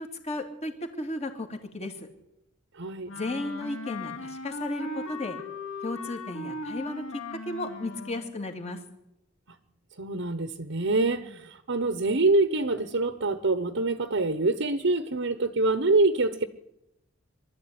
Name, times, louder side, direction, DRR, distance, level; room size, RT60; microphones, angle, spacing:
voice 1, 0.0-2.1 3.1-5.4 5.8-8.8 11.2-11.4, left 2 dB, 35° left, 2.7 m, -34 dB
voice 2, 2.7-3.1 10.0-16.4, right 2 dB, 65° right, 1.1 m, -25 dB
Wind instrument woodwind instrument, 3.1-8.3, left 2 dB, 75° left, 2.4 m, -38 dB
23.5 x 13.0 x 9.6 m
head